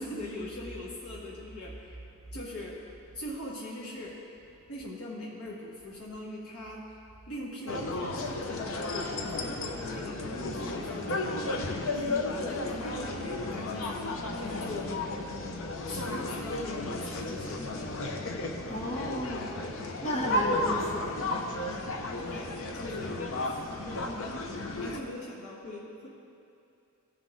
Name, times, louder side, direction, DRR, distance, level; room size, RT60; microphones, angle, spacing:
voice 1, 0.0-2.0 2.3-2.8 3.1-4.2 4.7-6.9 7.3-11.4 11.9-14.0 14.4-15.0 15.8-17.7 22.2-23.6 24.0-26.1, left 1 dB, 80° left, -5 dB, 1.5 m, -41 dB
sound 1, 7.7-25.0, left 2 dB, 60° left, 0.8 m, -33 dB
voice 2, 18.7-19.5 20.0-21.2 21.7-21.8, equal, 30° left, -2 dB, 1.1 m, -33 dB
16.0 x 6.2 x 3.8 m, 2.5 s
head